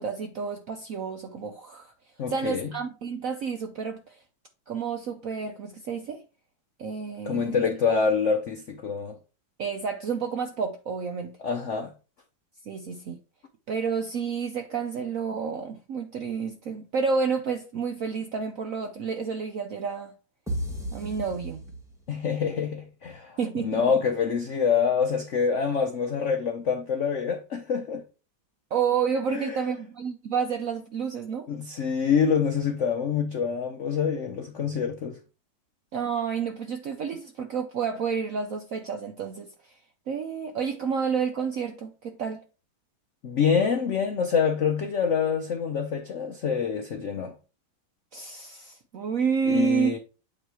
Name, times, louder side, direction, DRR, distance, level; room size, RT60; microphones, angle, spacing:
voice 1, 0.0-1.9 2.3-4.2 4.7-6.2 6.8-7.6 9.6-11.3 12.7-13.2 13.7-20.1 20.9-21.6 23.4-24.0 28.7-31.5 35.9-39.7 40.1-42.4 48.1-50.0, right 6 dB, 70° right, 0.8 m, -30 dB
voice 2, 2.2-2.7 7.2-9.2 11.4-11.9 22.1-28.0 29.3-29.6 31.5-35.2 43.2-47.3 49.5-50.0, left 6 dB, 90° left, 0.6 m, -26 dB
sound 1, 20.5-22.3, equal, ahead, 1.2 m, -34 dB
8.6 x 3.1 x 4.7 m
omnidirectional pair, 2.2 m